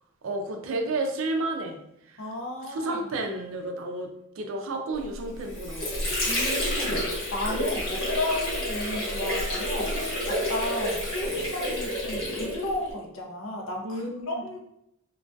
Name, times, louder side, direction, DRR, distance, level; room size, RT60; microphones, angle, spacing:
voice 1, 0.2-1.8 2.1-2.2 2.7-6.1 13.8-14.4, right 2 dB, 70° right, 4 dB, 0.4 m, -31 dB
voice 2, 2.2-3.0 6.3-14.6, left 1 dB, 70° left, 1 dB, 0.5 m, -34 dB
Water / Sink (filling or washing), 5.2-12.9, left 1 dB, 90° left, 1.0 m, -29 dB
2.3 x 2.2 x 2.5 m, 0.78 s
head